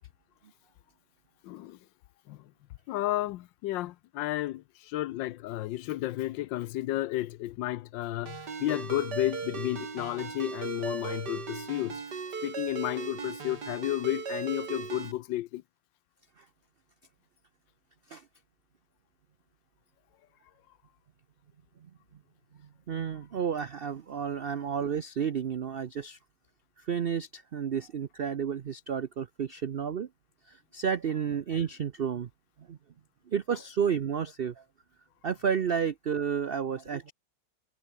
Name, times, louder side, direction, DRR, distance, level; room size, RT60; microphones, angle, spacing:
voice 1, 1.4-1.8 2.3-2.5 2.9-12.0 12.4-15.6, left 15 dB, 85° left, 1.4 m, -32 dB
Ringtone, 8.3-15.1, right 5 dB, 65° right, 3.0 m, -37 dB
voice 2, 22.9-26.2 26.8-30.1 30.5-32.3 32.6-32.8 33.3-34.6 35.2-37.1, right 7 dB, 80° right, 0.5 m, -31 dB
omnidirectional pair, 1.9 m